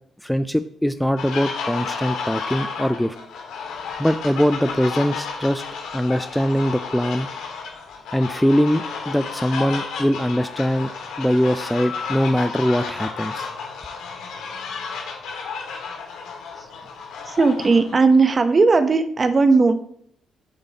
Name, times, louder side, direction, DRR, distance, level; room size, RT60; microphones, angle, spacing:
voice 1, 0.2-3.2 4.0-5.6 5.9-7.3 8.1-10.9 11.2-13.5, equal, 5° left, 11 dB, 0.3 m, -22 dB
sound 1, 1.2-18.0, left 5 dB, 85° left, 1.9 m, -32 dB
voice 2, 17.3-19.8, right 4 dB, 35° right, 9 dB, 0.8 m, -17 dB
8.9 x 7.9 x 2.9 m, 0.69 s
cardioid pair, 90°, 0 cm